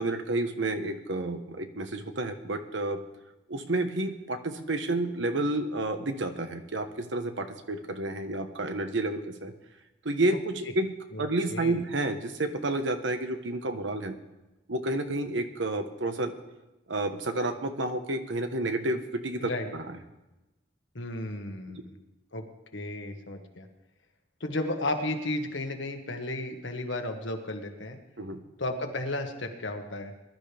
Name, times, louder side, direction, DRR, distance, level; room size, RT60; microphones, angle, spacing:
voice 1, 0.0-3.0 3.5-9.5 10.0-14.2 14.7-16.3 16.9-20.0 21.7-21.8 28.2-28.4, right 2 dB, 75° right, 7 dB, 1.2 m, -30 dB
voice 2, 11.1-11.8 19.4-19.7 20.9-21.9 22.3-22.5 22.7-23.7 24.4-28.0 28.6-30.1, left 2 dB, 75° left, 4 dB, 1.6 m, -33 dB
21.5 x 12.0 x 3.5 m, 1.0 s
head